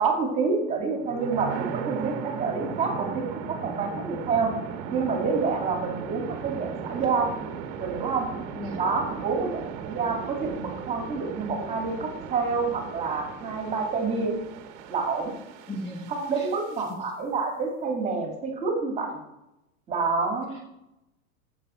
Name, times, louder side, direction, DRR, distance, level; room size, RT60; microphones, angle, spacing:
voice 1, 0.0-4.5 4.9-7.3 7.8-8.3 8.8-14.4 14.9-15.3 16.1-19.2 19.9-20.6, right 4 dB, 15° right, 1 dB, 2.3 m, -28 dB
sound 1, 1.0-16.9, right 7 dB, 40° right, 1.3 m, -37 dB
voice 2, 15.7-16.5 16.9-17.0 20.5-20.6, equal, 15° left, 0 dB, 1.4 m, -37 dB
13.5 x 7.3 x 4.4 m, 0.88 s
supercardioid pair, 155°, 41 cm